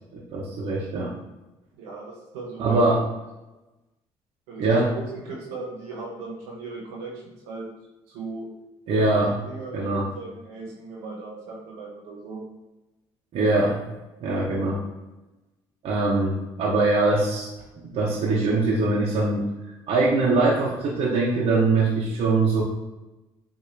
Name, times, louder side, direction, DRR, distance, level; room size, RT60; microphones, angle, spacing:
voice 1, 0.1-1.1 2.6-3.0 4.6-4.9 8.9-9.4 9.7-10.1 13.3-13.8 14.2-14.8 15.8-17.5 17.8-19.5 19.9-22.6, right 3 dB, 65° right, -4 dB, 0.7 m, -22 dB
voice 2, 1.8-2.8 4.5-7.7 8.1-8.5 8.9-12.4, right 3 dB, 90° right, -3 dB, 1.0 m, -38 dB
4.3 x 2.6 x 2.6 m, 1.0 s
supercardioid pair, 75°, 11 cm